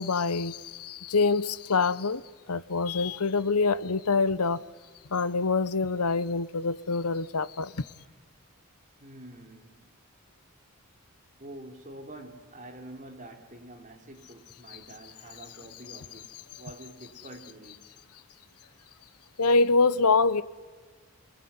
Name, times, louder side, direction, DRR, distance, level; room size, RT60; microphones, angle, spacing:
voice 1, 0.0-2.2 2.5-4.6 5.1-7.8 19.4-20.4, left 4 dB, 85° left, 0.9 m, -25 dB
voice 2, 9.0-9.9 11.4-17.8, right 1 dB, 35° right, 3.5 m, -47 dB
29.5 x 20.5 x 9.6 m
head